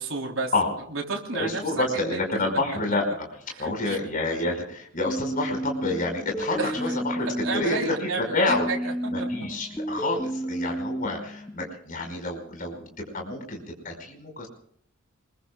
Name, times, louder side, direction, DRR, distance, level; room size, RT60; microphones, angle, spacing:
voice 1, 0.0-0.5 0.9-2.4 3.5-4.0 6.6-7.0 7.4-9.6, right 3 dB, 75° right, 0 dB, 3.6 m, -32 dB
voice 2, 1.3-3.3 3.6-8.7 9.1-14.5, left 2 dB, 40° left, 2 dB, 5.3 m, -28 dB
sound 1, 5.1-8.1 8.5-11.5, right 1 dB, 10° left, 0.8 m, -32 dB
27.5 x 22.0 x 2.4 m, 0.65 s
head